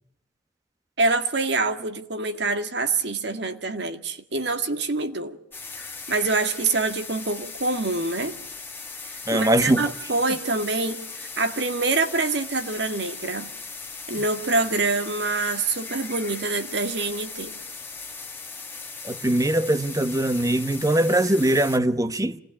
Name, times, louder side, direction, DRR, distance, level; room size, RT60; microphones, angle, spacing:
voice 1, 1.0-5.4 6.1-8.3 9.0-13.5 14.1-17.6, right 3 dB, 65° right, 2.0 m, -26 dB
sound 1, 5.5-21.8, left 4 dB, 10° left, 1.9 m, -38 dB
voice 2, 9.3-9.8 19.0-22.4, right 1 dB, 20° right, 1.0 m, -21 dB
27.5 x 19.0 x 10.0 m
head